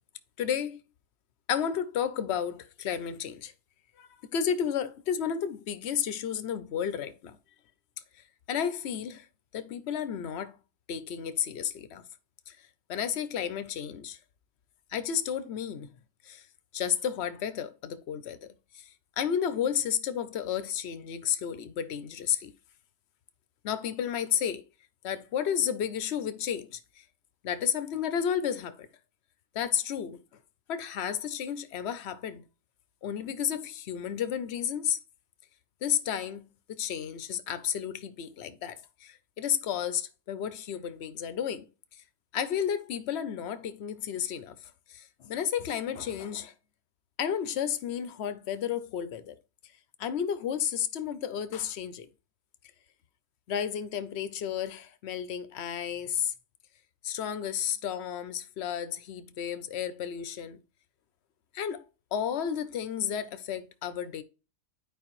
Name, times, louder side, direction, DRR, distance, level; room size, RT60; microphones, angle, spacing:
voice 1, 0.4-0.8 1.5-3.5 4.0-7.4 8.1-9.3 9.5-10.6 10.9-12.1 12.5-14.2 14.9-15.9 16.2-16.5 16.7-18.5 18.7-22.5 23.6-24.6 25.0-27.0 27.4-28.9 29.5-30.2 30.7-32.4 33.0-35.0 35.8-41.7 41.9-42.0 42.3-46.5 47.2-49.4 50.0-52.1 53.5-56.3 57.0-60.6 61.5-64.2, left 8 dB, 65° left, 0.6 m, -32 dB
11.5 x 4.7 x 3.1 m
omnidirectional pair, 1.8 m